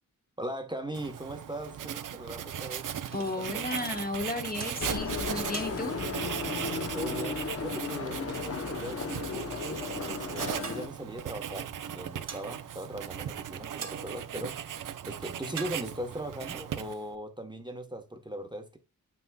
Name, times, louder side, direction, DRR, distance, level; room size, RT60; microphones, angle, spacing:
voice 1, 0.4-3.6 6.9-14.6 15.1-18.8, right 1 dB, 15° right, 1.0 m, -39 dB
Writing, 0.9-17.2, right 9 dB, 65° right, 0.7 m, -38 dB
sound 1, 3.0-4.2 4.6-5.1 5.5-6.3 8.0-8.1 10.6-11.1 12.3-12.8 13.8-14.4 15.6-16.0, right 5 dB, 50° right, 1.3 m, -44 dB
voice 2, 3.1-6.0, left 2 dB, 25° left, 1.2 m, -34 dB
sound 2, 4.8-10.9, left 5 dB, 45° left, 0.8 m, -35 dB
7.1 x 6.0 x 2.2 m
cardioid pair, 80°, 33 cm